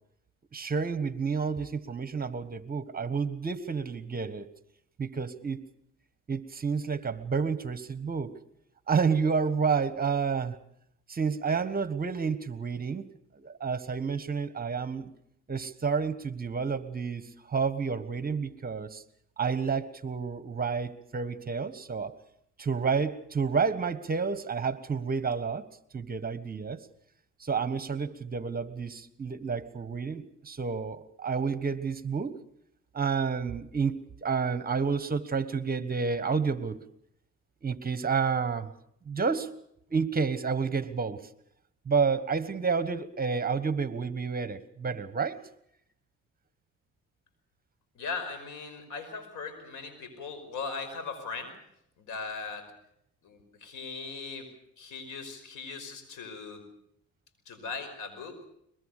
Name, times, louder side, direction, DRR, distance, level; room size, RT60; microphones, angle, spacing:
voice 1, 0.5-4.5 5.0-5.6 6.3-8.4 8.9-10.6 11.1-13.1 13.3-15.1 15.5-19.0 19.4-22.1 22.6-25.7 25.9-26.8 27.4-32.3 32.9-36.8 37.6-38.7 39.0-39.5 39.9-41.2 41.8-45.4, right 5 dB, 30° right, 14 dB, 1.4 m, -30 dB
voice 2, 47.9-51.6 52.0-52.7 53.2-56.6 57.5-58.4, left 4 dB, 85° left, 9 dB, 5.4 m, -39 dB
22.0 x 21.5 x 6.6 m, 0.73 s
cardioid pair, 90°, 30 cm